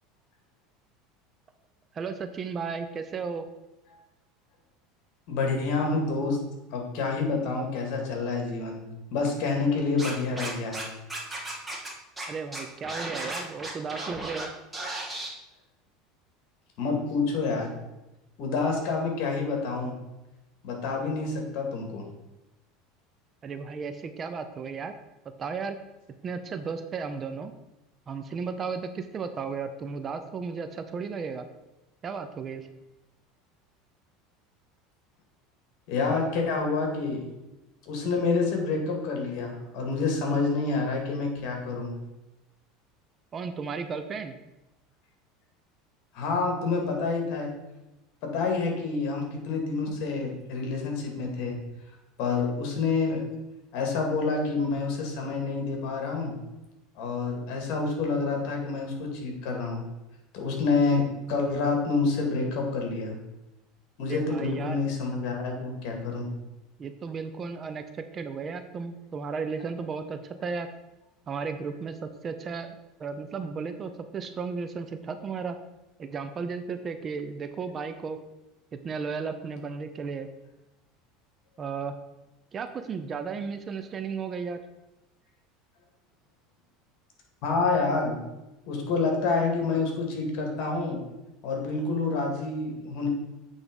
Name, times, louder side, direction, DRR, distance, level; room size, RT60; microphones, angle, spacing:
voice 1, 1.9-3.5 12.3-14.5 23.4-24.9 25.4-25.8 26.2-27.5 28.1-31.4 32.0-32.7 43.3-44.3 64.1-64.8 66.8-70.7 71.3-72.7 73.0-75.6 76.0-78.2 78.8-80.3 81.6-82.0 82.5-84.6, right 5 dB, 30° right, 9 dB, 0.6 m, -34 dB
voice 2, 5.3-6.4 6.7-10.9 16.8-17.7 18.4-19.9 20.6-22.1 35.9-37.2 37.8-41.9 46.1-47.5 48.2-51.6 52.2-53.2 53.7-56.4 57.0-59.8 60.3-63.2 64.0-66.3 87.4-88.2 88.7-91.0 91.4-93.1, left 4 dB, 60° left, 2 dB, 2.1 m, -28 dB
Scratching (performance technique), 10.0-10.8 11.1-11.9 12.2-12.3 12.5-14.4 14.7-15.3, right 2 dB, 10° right, 1.7 m, -35 dB
8.2 x 3.6 x 5.2 m, 0.99 s
supercardioid pair, 125°, 0 cm